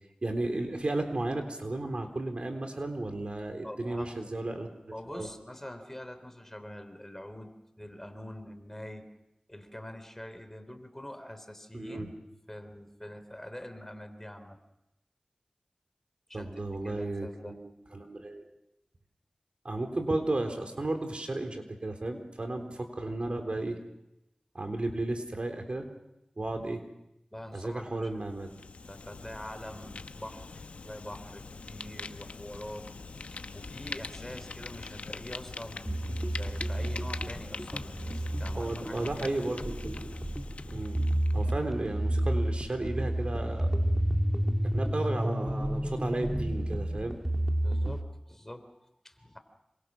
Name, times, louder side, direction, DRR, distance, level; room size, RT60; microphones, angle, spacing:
voice 1, 0.2-5.3 11.7-12.1 16.3-18.4 19.6-23.8 24.5-25.9 26.4-26.8 27.5-28.5 38.5-40.2 40.7-41.0 41.3-43.7 44.7-47.2, right 2 dB, 55° right, 4 dB, 3.7 m, -34 dB
voice 2, 3.6-4.1 4.9-9.1 9.5-12.1 12.5-14.6 16.3-17.6 27.3-32.9 33.5-39.4 41.4-41.5 47.6-49.4, left 1 dB, 15° left, 8 dB, 3.3 m, -45 dB
Fire, 28.2-41.6, left 4 dB, 90° left, 0.9 m, -43 dB
sound 1, 35.9-48.0, right 1 dB, 10° right, 2.5 m, -31 dB
27.5 x 24.0 x 6.2 m, 0.90 s
wide cardioid pair, 50°, 2 cm